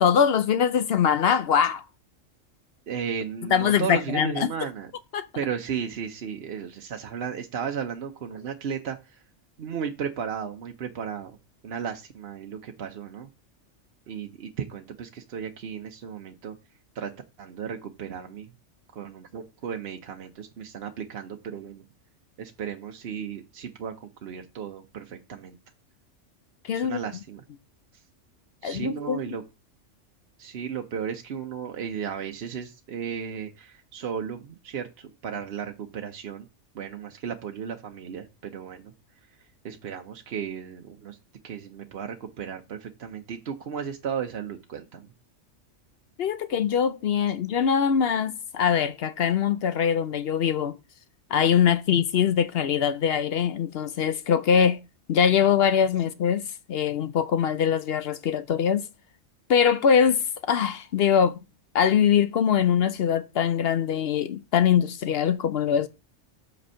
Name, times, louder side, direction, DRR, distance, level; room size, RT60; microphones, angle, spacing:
voice 1, 0.0-1.8 3.5-4.5 5.1-5.3 26.7-27.0 28.6-29.2 46.2-50.8 51.3-54.8 55.1-58.9 59.5-61.4 61.7-65.9, left 8 dB, 60° left, 0.7 m, -22 dB
voice 2, 2.9-4.9 5.3-9.2 9.6-11.4 11.6-13.3 14.1-16.6 16.9-17.1 17.4-18.5 18.9-21.8 22.4-25.6 26.7-27.4 28.6-29.4 30.4-36.5 36.7-38.9 39.6-41.2 41.4-45.1, right 7 dB, 60° right, 0.9 m, -34 dB
7.9 x 4.2 x 5.5 m
omnidirectional pair, 1.3 m